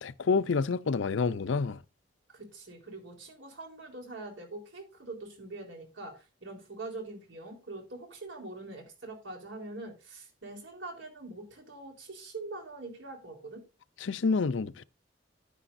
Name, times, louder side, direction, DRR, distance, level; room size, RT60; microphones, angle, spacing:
voice 1, 0.0-1.8 14.0-14.8, left 4 dB, 75° left, 0.5 m, -28 dB
voice 2, 2.3-13.6, right 2 dB, 75° right, 4.0 m, -43 dB
10.5 x 10.0 x 2.6 m
head